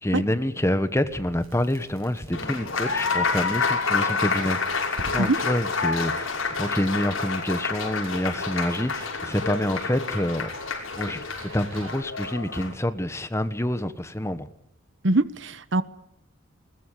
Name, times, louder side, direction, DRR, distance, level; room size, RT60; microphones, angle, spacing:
voice 1, 0.0-4.8 5.1-6.3 6.6-10.5 11.0-14.5, left 1 dB, 15° left, 1.3 m, -27 dB
Crackle, 1.1-11.9, right 1 dB, 85° right, 7.2 m, -47 dB
Applause, 2.3-12.7, left 4 dB, 75° left, 5.9 m, -28 dB
voice 2, 15.0-15.8, right 2 dB, 60° right, 1.2 m, -22 dB
21.0 x 20.5 x 9.9 m
head